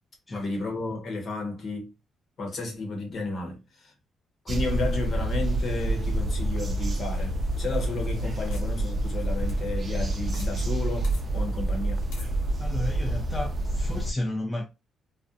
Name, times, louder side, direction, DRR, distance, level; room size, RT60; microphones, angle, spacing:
voice 1, 0.3-1.9 2.4-3.9 4.4-12.0, left 3 dB, 50° left, 1.0 m, -32 dB
sound 1, 4.5-14.1, right 1 dB, 35° right, 0.4 m, -28 dB
sound 2, 6.6-10.5 10.8-10.9 11.0-11.2 12.1-12.3, left 3 dB, 90° left, 0.8 m, -51 dB
voice 2, 12.6-14.6, left 1 dB, 15° left, 0.5 m, -32 dB
2.5 x 2.1 x 2.6 m
cardioid pair, 90°, 0 cm